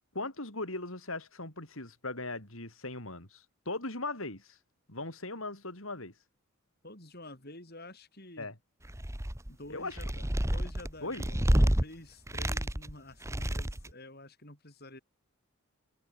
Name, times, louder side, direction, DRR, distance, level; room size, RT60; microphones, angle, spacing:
voice 1, 0.1-4.6 4.9-6.1 8.4-8.5 9.7-10.0 11.0-11.2, left 2 dB, 70° left, 7.1 m, -39 dB
voice 2, 6.8-8.5 9.5-15.0, left 1 dB, 45° left, 7.8 m, -49 dB
sound 1, 8.8-9.5 9.9-11.8 12.3-12.9 13.2-13.9, equal, 15° right, 1.4 m, -29 dB
head